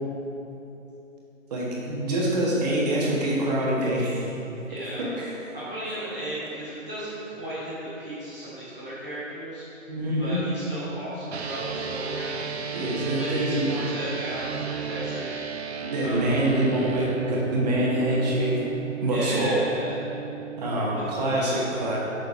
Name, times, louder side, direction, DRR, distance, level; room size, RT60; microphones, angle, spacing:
voice 1, 1.5-4.3 5.2-5.3 9.9-10.4 12.7-13.7 15.8-18.6 19.0-19.6 20.6-22.0, right 1 dB, 30° right, -4 dB, 1.6 m, -25 dB
voice 2, 4.7-5.1 5.5-9.9 10.2-12.4 13.0-15.4 16.0-16.5 19.1-20.0 20.9-21.6, equal, 5° right, -18 dB, 0.6 m, -35 dB
sound 1, 11.3-20.8, right 6 dB, 55° right, 0.6 m, -34 dB
6.9 x 6.6 x 4.9 m, 3.0 s
figure-of-eight pair, 150°, 40 cm